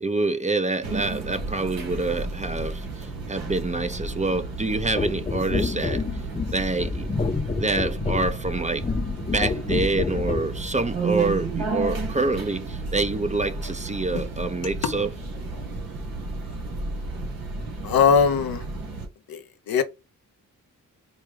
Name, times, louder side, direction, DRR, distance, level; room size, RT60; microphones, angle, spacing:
voice 1, 0.0-6.0 6.5-7.1 7.6-8.8 9.3-15.1, right 3 dB, 20° right, 0.7 m, -26 dB
sound 1, 0.8-19.1, right 3 dB, 90° right, 1.7 m, -33 dB
sound 2, 5.0-10.5 11.4-11.6, left 4 dB, 20° left, 0.4 m, -28 dB
voice 2, 17.8-18.6 19.3-19.8, left 6 dB, 85° left, 0.8 m, -21 dB
4.4 x 2.3 x 4.8 m
cardioid pair, 65°, 35 cm